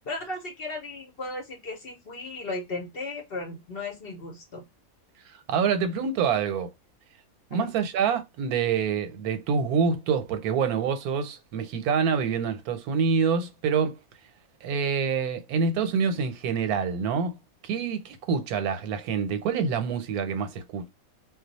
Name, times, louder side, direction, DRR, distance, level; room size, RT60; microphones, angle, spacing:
voice 1, 0.1-4.6 7.5-7.7, left 2 dB, 50° left, 0.8 m, -36 dB
voice 2, 5.5-6.7 7.5-14.0 14.6-17.4 17.6-20.9, right 6 dB, 85° right, 1.1 m, -26 dB
2.3 x 2.2 x 3.9 m
omnidirectional pair, 1.5 m